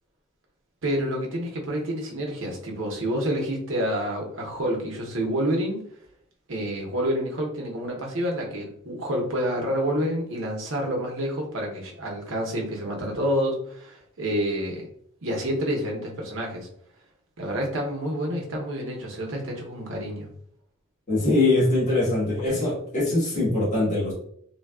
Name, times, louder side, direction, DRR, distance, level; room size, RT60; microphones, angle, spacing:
voice 1, 0.8-5.9 6.5-14.9 15.2-16.7 17.4-20.3, equal, 70° right, 0 dB, 0.8 m, -28 dB
voice 2, 21.1-24.1, left 2 dB, 40° left, -9 dB, 1.3 m, -22 dB
3.3 x 2.2 x 2.3 m, 0.65 s
head